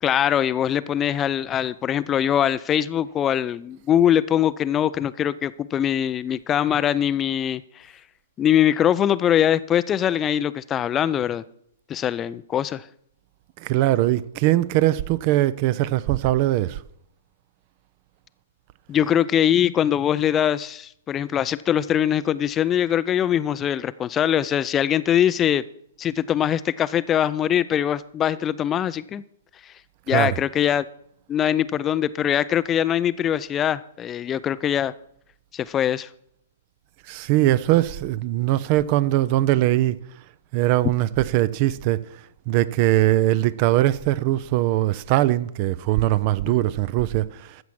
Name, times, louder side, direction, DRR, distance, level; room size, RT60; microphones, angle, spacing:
voice 1, 0.0-7.9 8.4-11.4 11.9-12.9 18.9-25.6 26.0-29.2 29.6-29.7 30.1-30.9 31.3-34.9 35.5-36.1 46.5-46.6, left 10 dB, 20° left, 0.4 m, -22 dB
voice 2, 13.6-16.8 30.1-30.3 37.1-40.0 40.5-42.0 42.5-47.3, right 15 dB, 40° right, 0.5 m, -21 dB
14.0 x 7.0 x 6.2 m
figure-of-eight pair, 110°, 0 cm